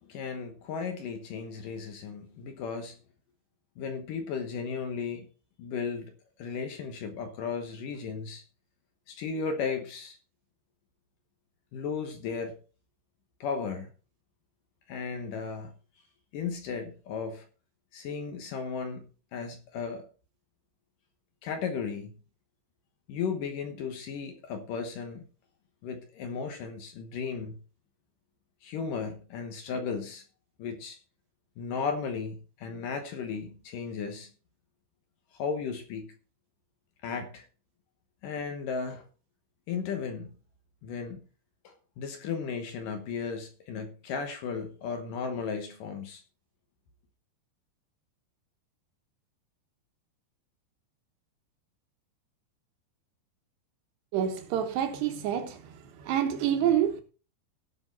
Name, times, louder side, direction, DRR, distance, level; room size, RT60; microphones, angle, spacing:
voice 1, 0.0-3.0 3.8-5.3 5.6-6.1 6.4-8.4 9.1-10.2 11.7-12.6 13.4-13.9 14.9-15.7 16.3-17.5 17.9-20.1 21.4-22.2 23.1-25.2 25.8-27.6 28.6-30.2 30.6-31.0 31.6-34.3 35.3-36.1 37.0-37.4 38.2-39.0 39.7-40.3 40.8-41.3 41.6-46.2, left 5 dB, 65° left, 2.2 m, -35 dB
voice 2, 54.1-55.6 56.0-57.0, right 10 dB, 70° right, 3.4 m, -27 dB
18.0 x 6.2 x 4.1 m
omnidirectional pair, 5.2 m